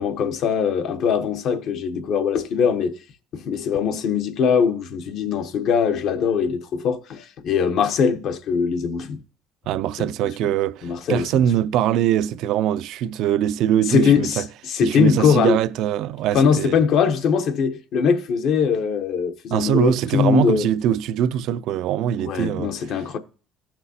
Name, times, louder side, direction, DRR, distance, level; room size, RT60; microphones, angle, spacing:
voice 1, 0.0-3.0 3.3-9.2 10.0-10.1 10.8-11.4 13.9-15.6 16.3-20.7 22.2-23.2, left 6 dB, 65° left, 0.8 m, -21 dB
voice 2, 9.7-14.5 14.8-16.8 19.5-23.0, right 11 dB, 70° right, 0.3 m, -22 dB
14.5 x 5.8 x 2.8 m
supercardioid pair, 100°, 0 cm